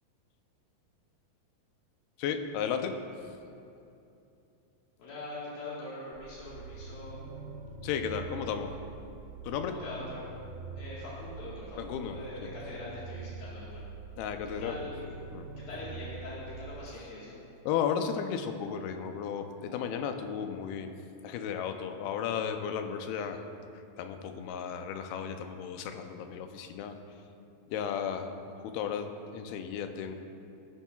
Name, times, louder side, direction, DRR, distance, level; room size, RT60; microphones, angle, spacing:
voice 1, 2.2-3.0 7.8-8.7 9.4-9.8 11.8-12.2 14.2-14.9 15.3-15.5 17.7-20.9 21.2-23.4 23.7-27.0 27.7-30.2, left 7 dB, 90° left, 6 dB, 2.6 m, -34 dB
voice 2, 5.0-7.2 8.5-8.7 9.7-10.3 10.7-13.8 14.6-15.0 15.6-17.4, left 2 dB, 75° left, -8 dB, 3.3 m, -42 dB
sound 1, 6.1-16.8, right 4 dB, 75° right, 2.4 m, -44 dB
16.5 x 10.0 x 2.3 m, 2.7 s
omnidirectional pair, 4.4 m